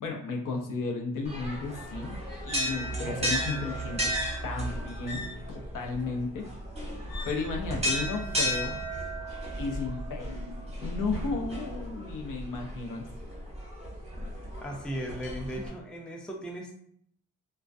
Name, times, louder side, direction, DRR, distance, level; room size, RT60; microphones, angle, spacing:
voice 1, 0.0-2.1 2.4-4.1 4.4-5.2 5.5-6.5 7.3-8.8 9.6-10.4 10.8-13.0, left 4 dB, 75° left, 2 dB, 0.6 m, -33 dB
sound 1, 1.2-15.7, equal, 20° right, 0.8 m, -34 dB
voice 2, 14.4-16.7, equal, 5° left, 0 dB, 0.3 m, -37 dB
2.3 x 2.2 x 2.5 m, 0.66 s
wide cardioid pair, 110°, 32 cm